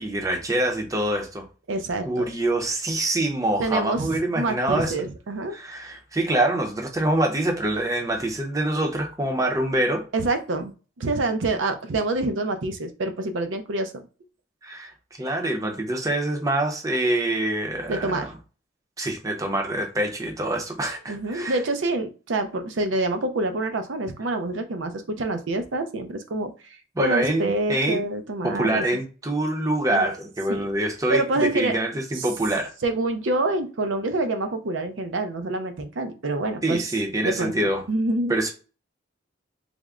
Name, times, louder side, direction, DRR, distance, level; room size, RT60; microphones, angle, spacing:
voice 1, 0.0-1.5 2.0-4.9 5.5-10.0 14.6-18.3 19.0-21.6 27.0-28.0 28.4-32.7 36.6-37.8 38.3-38.5, right 1 dB, 15° right, 0.6 m, -25 dB
voice 2, 1.7-2.3 3.6-5.5 10.1-13.9 17.9-18.3 21.1-26.5 27.0-28.8 29.9-30.1 30.5-30.7 31.1-31.8 32.1-32.3 32.8-36.9 37.2-38.3, right 2 dB, 80° right, 0.5 m, -26 dB
3.4 x 2.0 x 3.6 m
head